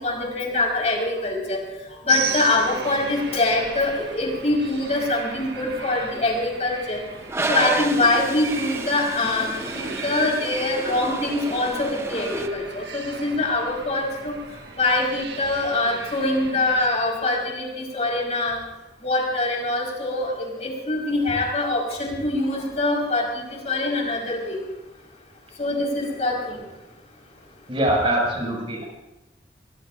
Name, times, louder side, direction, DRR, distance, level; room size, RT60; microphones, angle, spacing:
voice 1, 0.0-1.6 2.1-7.0 7.5-14.3 14.8-18.6 19.0-24.6 25.6-26.6, left 2 dB, 40° left, -1 dB, 4.8 m, -24 dB
sound 1, 2.1-16.9, right 5 dB, 65° right, 1.6 m, -36 dB
Toilet flush, 7.3-12.5, right 2 dB, 15° right, 0.8 m, -31 dB
voice 2, 27.7-28.8, right 1 dB, 30° right, -1 dB, 6.1 m, -23 dB
24.0 x 21.5 x 2.6 m, 1.0 s
head